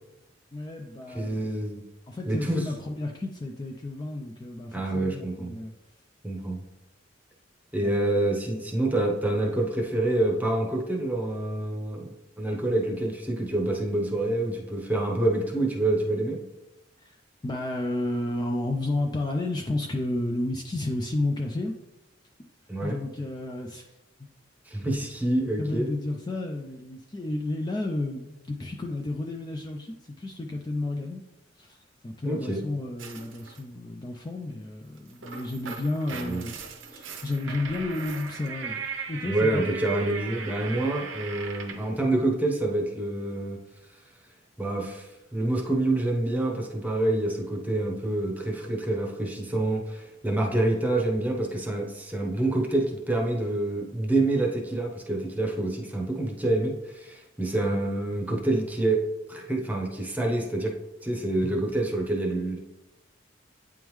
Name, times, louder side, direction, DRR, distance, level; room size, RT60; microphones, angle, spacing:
voice 1, 0.5-1.4 2.1-5.7 7.8-7.9 17.0-17.2 17.4-21.8 22.8-23.9 25.6-31.2 31.6-31.8 32.0-36.6 36.9-38.8 39.1-39.7, left 2 dB, 20° left, 2 dB, 0.4 m, -32 dB
voice 2, 1.1-1.8 2.3-2.6 4.7-5.6 6.2-6.6 7.7-12.1 12.4-16.4 22.7-23.0 24.7-25.9 32.2-32.6 36.1-36.4 39.2-43.6 44.6-59.0 59.3-60.7 61.0-62.6, right 2 dB, 10° right, 0 dB, 0.8 m, -27 dB
sound 1, 33.0-33.6 35.0-41.9, right 5 dB, 80° right, 0.7 m, -38 dB
8.7 x 3.6 x 3.1 m, 0.97 s
head